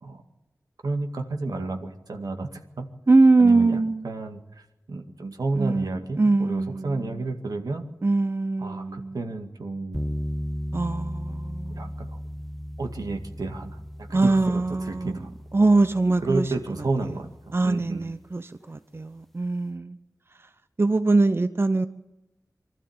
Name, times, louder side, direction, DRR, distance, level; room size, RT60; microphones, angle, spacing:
voice 1, 0.8-2.9 3.4-7.9 8.6-10.0 11.7-12.2 12.8-15.3 16.2-17.3 17.6-18.1, right 3 dB, 90° right, 4 dB, 2.0 m, -31 dB
voice 2, 3.1-4.1 5.5-5.9 6.2-7.2 8.0-9.2 10.7-11.9 14.1-15.2 15.5-16.5 17.5-20.0 20.8-21.9, right 3 dB, 40° right, 11 dB, 0.7 m, -22 dB
sound 1, 9.9-18.1, equal, 5° left, 0.8 m, -36 dB
24.0 x 13.0 x 8.9 m, 0.98 s
wide cardioid pair, 75°, 6 cm